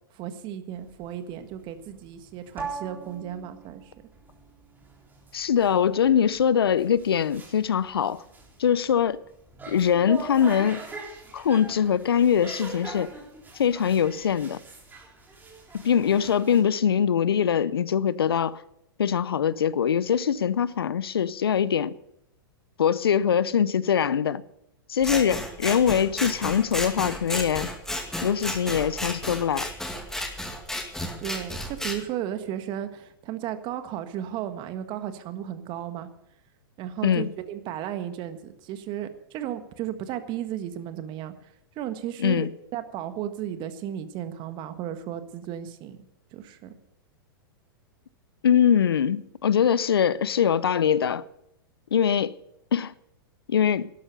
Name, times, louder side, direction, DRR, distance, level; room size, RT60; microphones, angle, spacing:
voice 1, 0.1-3.9 31.2-36.1 36.8-41.3 41.7-46.0 46.3-46.7, right 11 dB, 40° right, 1.6 m, -34 dB
sound 1, 0.8-16.6, right 3 dB, 15° right, 3.7 m, -42 dB
voice 2, 5.3-8.2 8.6-9.2 9.7-10.8 11.3-13.1 13.5-14.6 15.7-18.6 19.0-22.0 22.8-24.4 24.9-27.7 28.2-29.7 37.0-37.3 42.2-42.5 48.4-51.2 51.9-52.4 52.7-52.9 53.5-53.9, left 8 dB, 85° left, 0.6 m, -23 dB
Scissors, 25.0-32.0, left 1 dB, 5° left, 2.2 m, -33 dB
12.5 x 11.5 x 6.7 m
hypercardioid pair, 110°, 12 cm